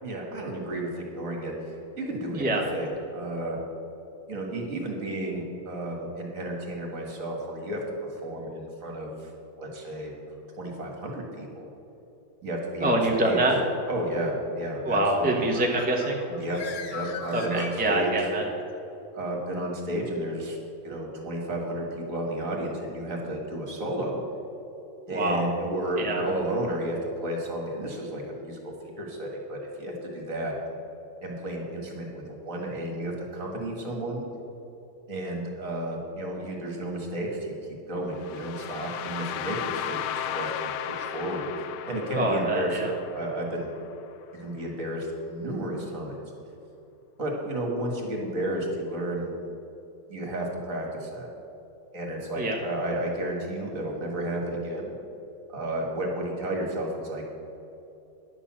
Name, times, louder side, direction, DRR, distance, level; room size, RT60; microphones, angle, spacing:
voice 1, 0.0-2.4 2.7-3.6 4.3-9.3 9.6-10.1 10.6-11.7 12.4-13.0 13.2-13.4 13.9-15.5 16.3-16.6 16.9-18.1 19.1-20.6 20.8-24.2 25.1-28.6 29.0-30.5 31.2-34.2 35.1-37.5 37.9-41.4 41.8-42.7 43.1-43.7 44.4-46.2 47.2-49.3 50.1-51.3 51.9-54.9 55.5-57.2, right 1 dB, 45° right, 0 dB, 2.1 m, -32 dB
voice 2, 12.8-13.6 14.8-16.2 17.3-18.4 25.1-25.4 26.0-26.3 42.2-42.9 52.4-52.6, right 1 dB, 5° right, 0 dB, 0.8 m, -25 dB
Bird, 15.3-18.4, left 6 dB, 50° left, 1.0 m, -40 dB
sound 1, 38.2-44.1, left 10 dB, 75° left, 1.2 m, -35 dB
10.5 x 6.9 x 7.4 m, 2.8 s
omnidirectional pair, 2.0 m